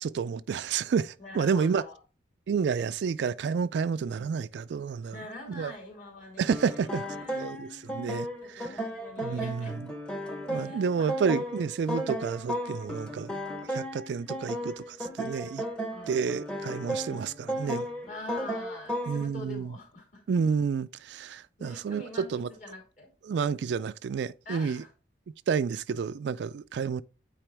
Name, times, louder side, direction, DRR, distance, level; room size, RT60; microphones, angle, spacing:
voice 1, 0.0-1.8 2.5-5.1 5.5-5.7 6.4-7.0 7.3-8.7 9.2-9.9 10.5-13.4 13.7-15.6 16.1-17.9 19.1-19.7 20.3-22.5 23.2-24.8 25.5-27.0, right 6 dB, 65° right, 0.3 m, -30 dB
voice 2, 1.2-2.0 2.7-2.9 5.1-7.4 8.4-9.8 10.3-11.1 15.9-16.2 18.1-20.2 21.2-21.3 21.6-23.1 24.4-24.9, left 2 dB, 40° left, 2.6 m, -45 dB
sound 1, 6.5-19.3, equal, 5° left, 0.9 m, -35 dB
9.0 x 4.2 x 3.4 m
head